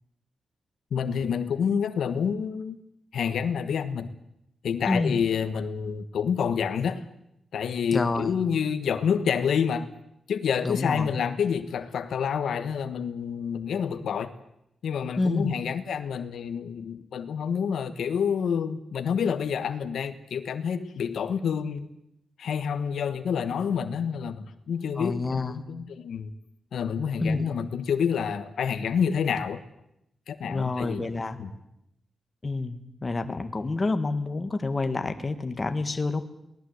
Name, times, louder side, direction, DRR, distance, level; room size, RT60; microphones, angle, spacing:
voice 1, 0.9-2.8 3.1-4.1 4.6-7.1 7.5-9.9 10.3-14.3 14.8-21.9 22.4-26.3 26.7-29.6 30.3-31.0 31.4-31.5, left 7 dB, 80° left, 11 dB, 1.3 m, -28 dB
voice 2, 4.9-5.2 7.9-8.3 10.6-11.1 15.2-15.5 25.0-25.6 27.2-27.6 30.4-31.4 32.4-36.2, left 3 dB, 25° left, 8 dB, 1.8 m, -28 dB
23.0 x 18.5 x 8.0 m, 0.81 s
wide cardioid pair, 140°, 0 cm